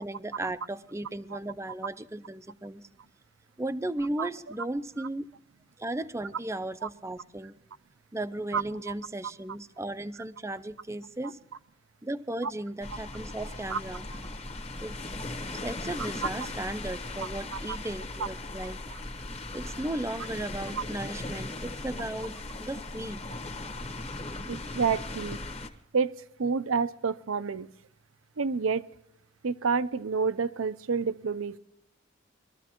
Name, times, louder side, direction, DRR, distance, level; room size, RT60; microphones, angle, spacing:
voice 1, 0.0-2.9 3.6-5.3 5.8-7.6 8.1-11.4 12.0-14.0 14.8-15.0 15.5-18.8 19.5-22.3 22.6-23.2, right 1 dB, 15° right, 12 dB, 0.5 m, -36 dB
sound 1, 12.8-25.7, left 2 dB, 30° left, 1.3 m, -38 dB
voice 2, 24.5-25.4 25.9-26.1 26.4-27.7 28.4-28.8 29.4-31.6, right 5 dB, 75° right, 14 dB, 0.6 m, -29 dB
22.5 x 13.5 x 3.0 m, 0.82 s
head